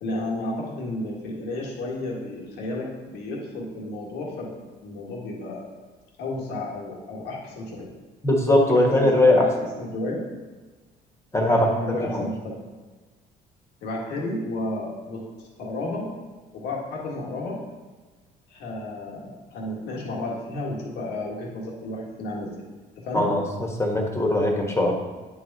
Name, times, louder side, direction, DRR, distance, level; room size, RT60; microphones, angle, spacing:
voice 1, 0.0-4.6 4.8-5.7 6.2-7.9 8.7-10.2 11.5-12.6 13.8-16.1 16.5-17.6 18.5-22.5 23.0-23.3, left 2 dB, 85° left, -2 dB, 1.7 m, -32 dB
voice 2, 8.2-9.4 11.3-11.7 12.1-12.2 23.1-23.4 23.8-24.9, left 1 dB, 15° left, 1 dB, 1.4 m, -20 dB
9.2 x 4.8 x 4.1 m, 1.3 s
cardioid pair, 110°, 17 cm